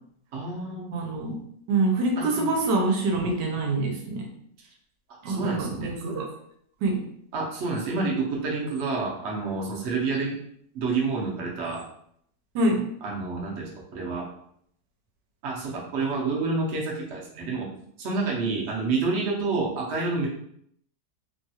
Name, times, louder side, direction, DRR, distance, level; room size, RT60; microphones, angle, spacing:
voice 1, 0.3-0.9 2.2-2.4 5.3-5.9 7.3-10.4 10.7-11.8 13.0-14.2 15.4-17.7 18.0-20.3, right 3 dB, 55° right, -3 dB, 0.8 m, -28 dB
voice 2, 0.9-1.4 1.7-4.3 5.2-6.3 6.8-7.0 12.5-12.8, right 2 dB, 80° right, 2 dB, 1.2 m, -25 dB
3.0 x 2.3 x 2.7 m, 0.69 s
omnidirectional pair, 1.9 m